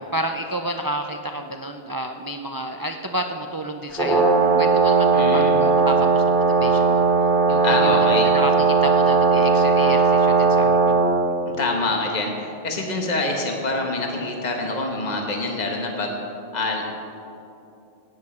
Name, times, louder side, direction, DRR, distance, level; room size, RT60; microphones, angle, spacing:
voice 1, 0.1-4.3 4.6-7.0 7.5-8.5 8.8-11.1, right 1 dB, 30° right, 4 dB, 0.4 m, -30 dB
Brass instrument, 3.9-11.1, right 4 dB, ahead, 2.5 m, -18 dB
voice 2, 5.1-5.5 7.6-8.3 11.6-16.2 16.5-16.9, left 2 dB, 40° left, 1 dB, 1.4 m, -25 dB
16.5 x 10.0 x 4.3 m, 2.7 s
omnidirectional pair, 1.1 m